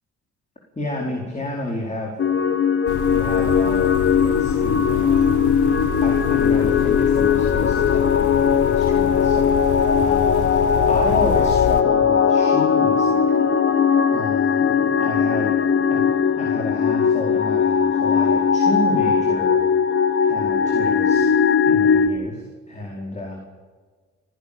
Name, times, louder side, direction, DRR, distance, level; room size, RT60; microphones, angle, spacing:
voice 1, 0.8-2.1 3.1-5.4 6.0-8.3 8.6-13.2 14.1-15.5 15.9-16.0 16.4-19.6 20.2-21.3 21.6-23.4, left 1 dB, 25° left, -1 dB, 4.6 m, -31 dB
sound 1, 2.2-22.1, left 7 dB, 45° left, 1.4 m, -19 dB
sound 2, 2.9-11.8, left 8 dB, 75° left, 1.6 m, -28 dB
30.0 x 11.0 x 8.7 m, 1.5 s
cardioid pair, 90°, 30 cm